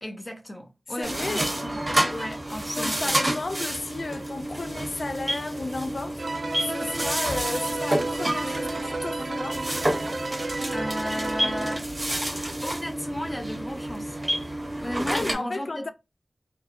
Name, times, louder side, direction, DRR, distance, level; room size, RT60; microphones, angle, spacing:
voice 1, 0.0-3.2 10.3-11.9 12.6-14.2 14.5-15.9, equal, 25° left, 0.7 m, -35 dB
voice 2, 1.0-1.5 2.8-6.2 6.6-9.7 15.1-15.9, left 3 dB, 80° left, 0.3 m, -33 dB
sound 1, 1.0-15.3, right 1 dB, 50° right, 1.0 m, -29 dB
sound 2, 6.2-11.8, right 3 dB, 75° right, 0.3 m, -32 dB
2.6 x 2.0 x 2.5 m
wide cardioid pair, 50°, 0 cm